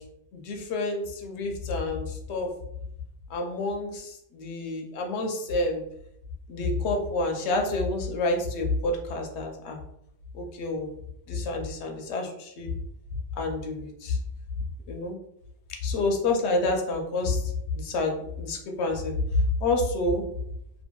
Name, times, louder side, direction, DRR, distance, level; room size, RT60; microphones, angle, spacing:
voice 1, 0.3-2.5 3.3-5.8 6.5-9.8 10.3-10.9 11.3-12.7 13.4-14.2 14.9-15.2 15.8-19.1 19.6-20.2, left 2 dB, 75° left, 3 dB, 0.8 m, -28 dB
2.6 x 2.5 x 2.2 m, 0.75 s
omnidirectional pair, 1.2 m